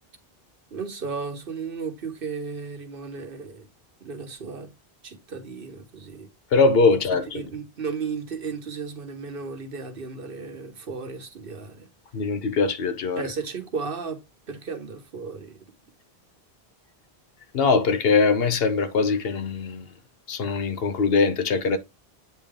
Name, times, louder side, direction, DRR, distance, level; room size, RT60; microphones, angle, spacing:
voice 1, 0.7-3.7 4.0-4.7 5.0-6.3 7.3-11.9 13.1-14.2 14.5-15.6, right 5 dB, 60° right, 1.2 m, -34 dB
voice 2, 6.5-7.4 12.1-13.2 17.5-19.8 20.3-21.8, left 4 dB, 70° left, 1.0 m, -22 dB
8.5 x 3.4 x 3.5 m
omnidirectional pair, 1.1 m